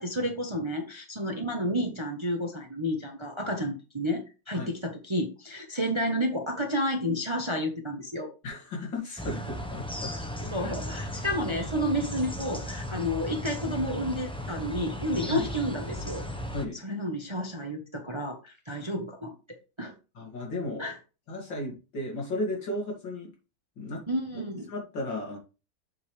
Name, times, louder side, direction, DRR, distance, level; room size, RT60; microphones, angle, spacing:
voice 1, 0.0-8.3 10.5-16.2 16.8-19.3 19.8-19.9 20.8-21.0 24.1-24.7, equal, 20° right, 3 dB, 0.8 m, -31 dB
voice 2, 8.4-10.9 15.3-15.5 16.5-16.8 20.1-20.9 21.3-23.3 23.8-24.0 24.3-24.4 24.7-25.4, left 1 dB, 80° left, -1 dB, 3.1 m, -35 dB
sound 1, 9.2-16.7, equal, 5° left, 0.3 m, -36 dB
7.4 x 5.4 x 3.3 m, 0.32 s
omnidirectional pair, 2.0 m